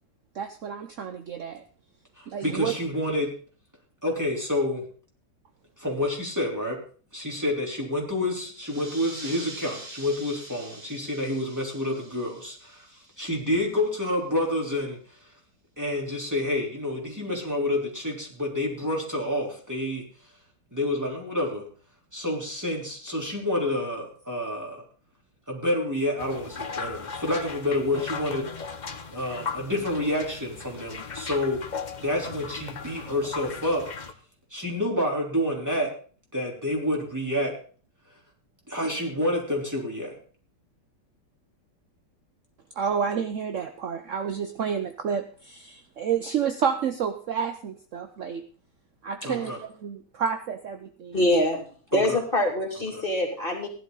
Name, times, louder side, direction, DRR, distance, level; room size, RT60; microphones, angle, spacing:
voice 1, 0.3-1.6 2.3-2.8 42.8-48.4 49.0-49.5 49.8-51.2, right 7 dB, 60° right, 7 dB, 0.8 m, -29 dB
voice 2, 2.2-3.3 4.0-4.8 5.8-6.8 7.1-12.9 13.2-15.0 15.8-20.0 20.7-21.7 22.1-24.8 25.5-28.4 29.1-31.6 32.0-33.9 34.5-35.9 36.3-37.6 38.7-40.1 49.2-49.6 51.9-52.2 52.9-53.0, left 1 dB, 10° right, -2 dB, 3.4 m, -28 dB
sound 1, 8.5-13.7, right 1 dB, 80° right, 5.1 m, -44 dB
sound 2, 26.2-34.1, left 5 dB, 60° left, 0.4 m, -37 dB
voice 3, 49.2-49.5 51.1-51.6 51.9-53.7, left 1 dB, 25° left, 1 dB, 2.9 m, -25 dB
16.0 x 11.0 x 4.0 m, 0.41 s
omnidirectional pair, 2.2 m